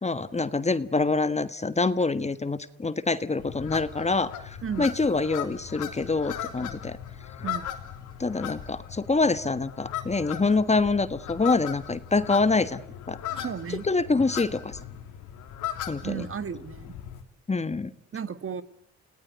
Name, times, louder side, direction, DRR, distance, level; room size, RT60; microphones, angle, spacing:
voice 1, 0.0-7.0 8.2-13.2 13.7-14.8 15.9-16.3 17.5-17.9, left 3 dB, 20° left, 13 dB, 1.4 m, -26 dB
sound 1, 3.4-17.2, left 10 dB, 85° left, 3.2 m, -38 dB
voice 2, 13.4-13.8 16.0-16.9 18.1-18.6, right 7 dB, 45° right, 13 dB, 1.7 m, -33 dB
30.0 x 19.0 x 9.3 m, 0.69 s
cardioid pair, 90°, 30 cm